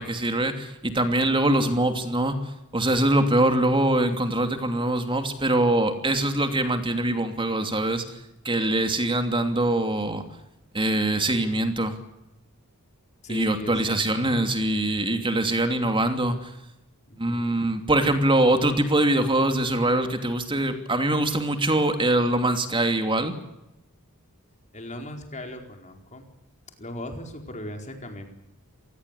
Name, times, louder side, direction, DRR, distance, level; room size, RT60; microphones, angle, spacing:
voice 1, 0.0-2.4 2.7-8.0 8.4-10.2 10.7-12.0 13.3-16.5 17.2-23.3, right 1 dB, 25° right, 7 dB, 2.8 m, -23 dB
voice 2, 13.2-14.4 17.1-17.7 24.7-26.3 26.8-28.3, left 1 dB, 35° left, 4 dB, 4.5 m, -38 dB
27.0 x 19.5 x 8.4 m, 0.89 s
head